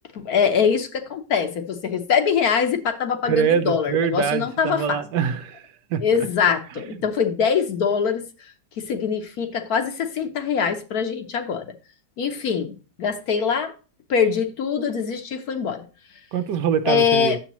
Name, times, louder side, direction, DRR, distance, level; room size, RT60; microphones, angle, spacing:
voice 1, 0.2-4.8 6.0-8.3 8.8-11.6 12.2-13.7 14.1-15.8 16.9-17.4, left 6 dB, 60° left, 1.2 m, -23 dB
voice 2, 3.2-5.6 5.9-6.0 6.9-7.0 16.3-17.4, right 7 dB, 75° right, 1.3 m, -24 dB
9.1 x 7.2 x 3.0 m
omnidirectional pair, 1.9 m